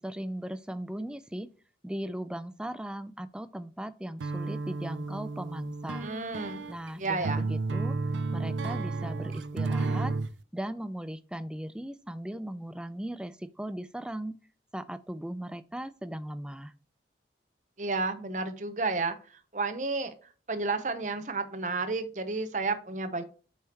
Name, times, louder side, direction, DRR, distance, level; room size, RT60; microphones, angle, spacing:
voice 1, 0.0-1.5 1.8-6.1 6.7-8.0 8.3-10.1 10.5-14.4 14.7-16.7, right 1 dB, 5° right, 0.3 m, -38 dB
sound 1, 4.2-10.3, right 3 dB, 90° right, 0.5 m, -32 dB
voice 2, 6.0-6.6 7.0-7.5 17.8-20.1 20.5-23.2, right 3 dB, 45° right, 0.8 m, -31 dB
7.5 x 5.6 x 2.9 m
head